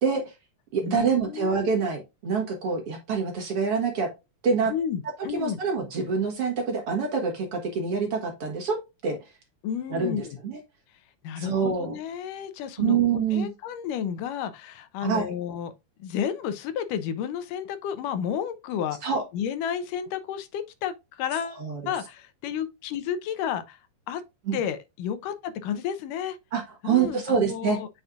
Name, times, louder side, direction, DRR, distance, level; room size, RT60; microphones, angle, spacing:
voice 1, 0.0-0.3 0.7-4.1 4.4-4.7 5.3-8.8 9.0-9.2 9.9-10.6 11.4-12.0 12.8-13.5 15.0-15.2 19.0-19.2 21.6-21.9 24.5-24.6 26.5-27.8, right 5 dB, 55° right, 2.1 m, -26 dB
voice 2, 0.8-1.8 4.7-5.6 9.6-10.4 11.2-13.0 13.3-15.7 16.0-23.8 24.1-24.2 24.5-26.4 26.8-27.9, left 8 dB, 80° left, 2.4 m, -32 dB
8.0 x 5.4 x 2.4 m
omnidirectional pair, 3.8 m